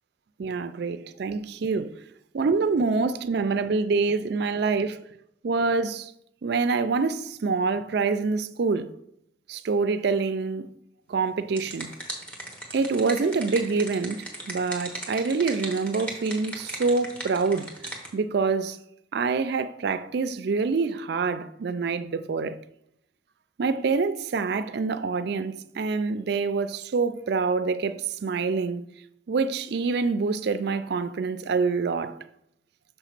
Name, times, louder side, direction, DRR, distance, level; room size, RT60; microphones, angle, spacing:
voice 1, 0.4-1.9 2.3-5.0 5.4-6.1 6.4-8.9 9.5-10.7 11.1-11.9 12.7-17.7 18.1-18.8 19.1-22.6 23.6-28.8 29.3-32.2, right 4 dB, 55° right, 0.4 m, -26 dB
sound 1, 11.2-18.1, right 1 dB, 5° left, 1.0 m, -38 dB
6.4 x 3.0 x 5.8 m
head